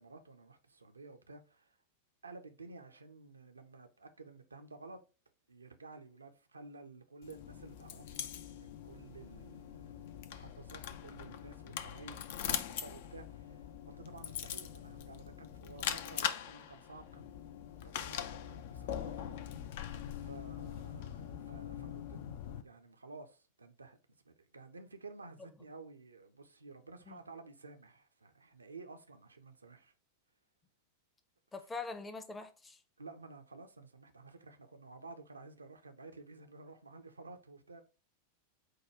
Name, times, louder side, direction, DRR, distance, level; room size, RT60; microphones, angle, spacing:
voice 1, 0.0-1.8 2.2-5.0 5.5-19.6 20.2-24.0 24.2-29.9 33.0-37.8, right 3 dB, 75° right, 0.6 m, -53 dB
sound 1, 7.2-22.6, left 9 dB, 55° left, 0.4 m, -42 dB
voice 2, 31.5-32.8, left 4 dB, 15° left, 0.6 m, -44 dB
4.7 x 2.3 x 4.4 m
figure-of-eight pair, 90°, 0 cm